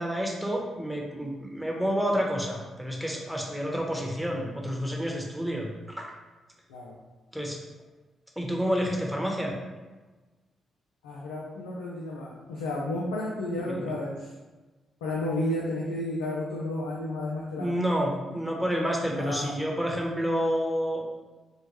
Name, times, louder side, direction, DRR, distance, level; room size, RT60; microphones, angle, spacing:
voice 1, 0.0-6.1 7.3-7.6 8.4-9.5 13.6-13.9 17.5-21.0, equal, ahead, -1 dB, 0.9 m, -29 dB
voice 2, 11.0-14.3 15.0-17.8 19.2-19.6, left 1 dB, 90° left, -4 dB, 0.4 m, -32 dB
4.5 x 2.1 x 3.0 m, 1.2 s
hypercardioid pair, 45°, 0 cm